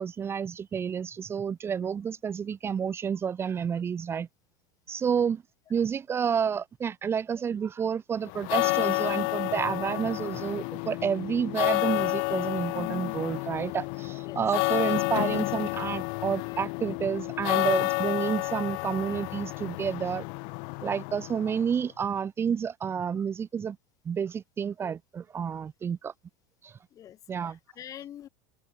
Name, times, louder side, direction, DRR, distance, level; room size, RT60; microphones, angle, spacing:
voice 1, 0.0-4.3 4.9-5.4 5.7-20.2 20.8-23.8 24.0-26.1 26.6-26.8 27.3-27.6, right 7 dB, 25° right, 1.2 m, -30 dB
sound 1, 8.3-21.8, left 37 dB, 55° left, 0.9 m, -30 dB
voice 2, 14.2-14.6 16.5-16.6 23.1-23.2 26.9-28.3, left 11 dB, 40° left, 2.6 m, -46 dB
hypercardioid pair, 85°, 9 cm